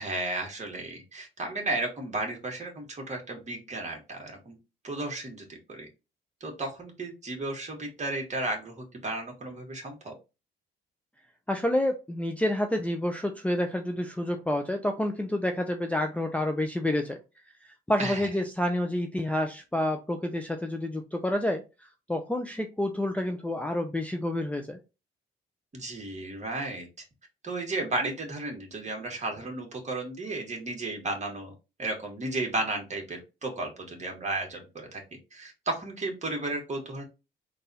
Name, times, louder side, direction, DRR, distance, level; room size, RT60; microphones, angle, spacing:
voice 1, 0.0-4.6 4.8-5.9 6.4-10.1 18.0-18.3 25.7-26.9 27.4-31.5 31.8-35.0 35.3-37.0, right 2 dB, 35° right, 2 dB, 1.9 m, -34 dB
voice 2, 11.5-17.2 17.9-21.6 22.1-24.8, left 1 dB, 5° left, 4 dB, 0.6 m, -28 dB
3.9 x 2.6 x 4.2 m, 0.27 s
cardioid pair, 90°, 20 cm